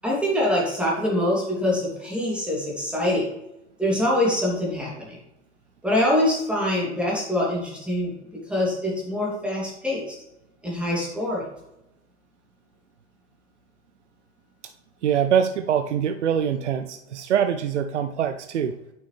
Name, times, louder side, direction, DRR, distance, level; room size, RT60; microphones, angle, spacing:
voice 1, 0.0-3.2 3.8-5.1 5.8-8.1 8.5-10.1 10.6-11.4, left 1 dB, 5° right, -5 dB, 2.9 m, -24 dB
voice 2, 15.0-18.7, right 8 dB, 80° right, 9 dB, 0.6 m, -24 dB
8.6 x 6.1 x 3.4 m, 0.87 s
figure-of-eight pair, 85°, 35 cm